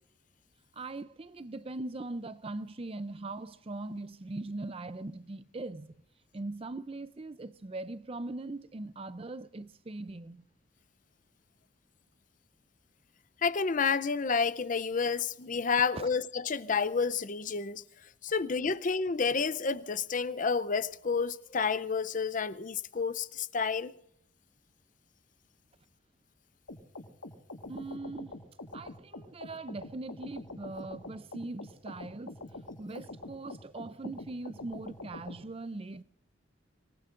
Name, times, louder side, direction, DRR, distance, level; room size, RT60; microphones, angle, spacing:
voice 1, 0.7-5.9 6.3-10.4 15.9-16.1 18.7-18.8 27.7-28.3 28.7-32.3 32.8-36.0, right 2 dB, 30° right, 0.5 m, -40 dB
voice 2, 13.4-17.8 18.2-23.9, left 5 dB, 40° left, 0.6 m, -30 dB
sound 1, 26.7-35.4, left 2 dB, 80° left, 1.7 m, -45 dB
25.5 x 18.5 x 2.5 m
head